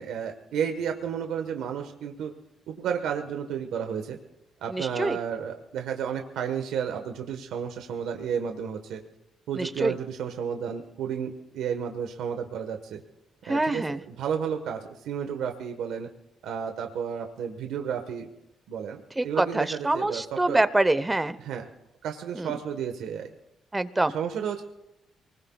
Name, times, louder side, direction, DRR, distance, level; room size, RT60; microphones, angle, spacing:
voice 1, 0.0-2.3 2.7-4.2 4.6-9.0 9.5-13.0 13.5-16.1 16.4-18.3 18.7-20.6 21.4-21.7 22.0-23.3 24.1-24.6, right 7 dB, 85° right, 4 dB, 1.4 m, -32 dB
voice 2, 4.7-5.2 9.6-9.9 13.5-14.0 19.2-21.4 22.4-22.5 23.7-24.1, right 2 dB, 15° right, 13 dB, 1.0 m, -25 dB
24.0 x 20.5 x 2.4 m, 0.90 s
cardioid pair, 90°, 0 cm